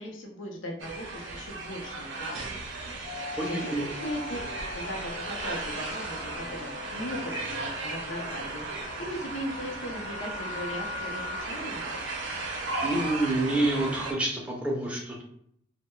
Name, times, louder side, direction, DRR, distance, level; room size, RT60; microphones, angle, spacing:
voice 1, 0.0-2.5 3.5-4.4 4.7-11.9, equal, 85° left, 1 dB, 0.6 m, -38 dB
sound 1, 0.8-14.1, right 2 dB, 75° right, 0.5 m, -36 dB
sound 2, 3.0-11.4, left 4 dB, 50° left, 0.8 m, -42 dB
voice 2, 3.4-3.8 12.8-15.2, right 2 dB, 5° right, -2 dB, 0.4 m, -28 dB
2.2 x 2.1 x 2.9 m, 0.70 s
head